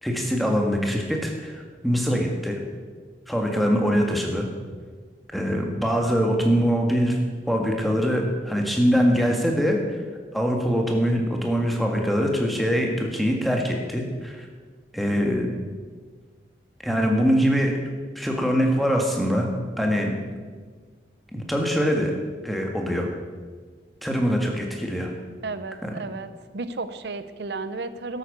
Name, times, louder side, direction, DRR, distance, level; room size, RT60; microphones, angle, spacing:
voice 1, 0.0-2.6 3.3-4.5 5.3-7.2 7.5-9.8 10.3-14.5 14.9-15.5 16.8-17.7 18.1-19.5 19.8-20.1 21.3-22.1 22.4-23.1 24.0-25.1 25.8-25.9, equal, ahead, 1 dB, 1.6 m, -23 dB
voice 2, 25.4-26.3 26.5-28.2, right 3 dB, 75° right, 12 dB, 0.8 m, -33 dB
12.5 x 8.6 x 6.7 m, 1.5 s
head